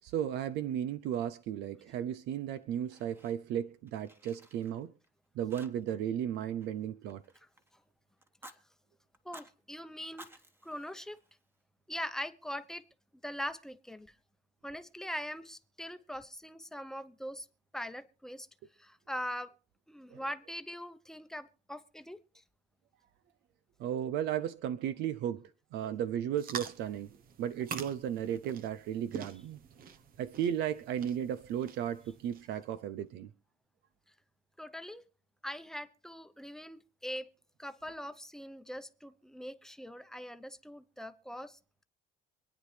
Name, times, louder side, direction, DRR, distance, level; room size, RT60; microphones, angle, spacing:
voice 1, 0.0-4.9 5.4-7.2 20.1-20.2 23.8-25.4 25.7-27.1 27.4-29.6 30.2-33.3, right 10 dB, 85° right, 0.6 m, -35 dB
Fire, 2.5-3.6 3.9-5.1 5.5-6.1 6.3-7.7 8.2-8.6 9.1-9.5 10.0-11.6, right 1 dB, 15° right, 1.4 m, -55 dB
voice 2, 9.2-10.3 10.6-11.2 11.9-12.8 13.2-14.2 14.6-17.5 17.7-18.5 18.8-19.5 19.9-22.4 34.6-35.0 35.4-37.3 37.6-41.6, equal, 5° left, 0.9 m, -42 dB
sound 1, 26.3-32.7, right 6 dB, 60° right, 1.0 m, -46 dB
25.5 x 9.6 x 3.3 m
cardioid pair, 110°, 17 cm